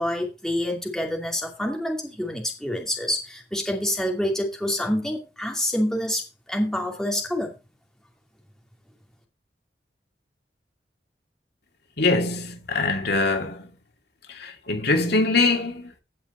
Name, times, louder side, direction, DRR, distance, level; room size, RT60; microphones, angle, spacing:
voice 1, 0.0-7.5, left 1 dB, 5° left, 2.6 m, -27 dB
voice 2, 12.0-13.7 14.3-16.0, left 3 dB, 65° left, 2.4 m, -23 dB
16.5 x 5.6 x 4.3 m
head